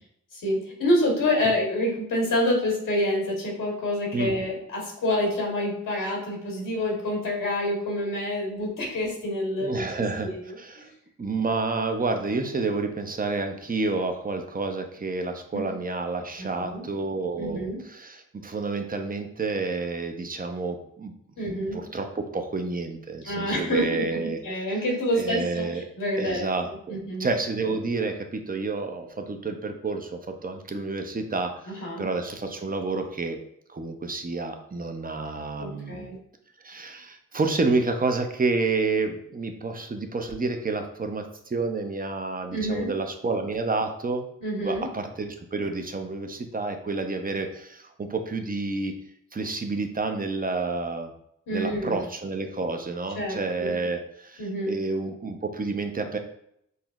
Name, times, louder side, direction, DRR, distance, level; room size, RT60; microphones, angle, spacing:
voice 1, 0.3-9.9 10.4-10.5 10.8-10.9 15.5-15.7 16.4-16.9 17.4-17.8 21.4-21.8 23.2-26.4 26.9-27.3 31.7-32.1 35.6-36.2 42.5-42.9 44.4-44.9 51.5-52.0 53.1-53.7 54.4-54.8, left 1 dB, 85° left, -2 dB, 1.3 m, -27 dB
voice 2, 9.6-10.3 10.6-10.9 11.2-21.1 21.7-24.6 25.1-25.8 26.2-33.4 33.7-36.1 36.6-44.2 44.6-48.9 49.3-51.1 51.5-56.2, right 3 dB, 25° right, 5 dB, 0.6 m, -29 dB
5.4 x 2.0 x 2.4 m, 0.72 s
supercardioid pair, 45°, 32 cm